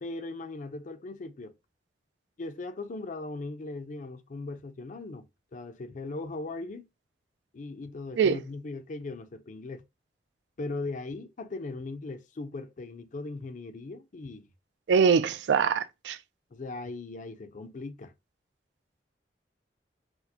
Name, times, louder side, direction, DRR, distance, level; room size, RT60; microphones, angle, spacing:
voice 1, 0.0-1.6 2.4-6.9 7.5-9.8 10.6-14.5 16.5-18.1, left 3 dB, 45° left, 0.4 m, -39 dB
voice 2, 14.9-16.2, right 6 dB, 75° right, 0.3 m, -23 dB
4.2 x 2.1 x 2.7 m
head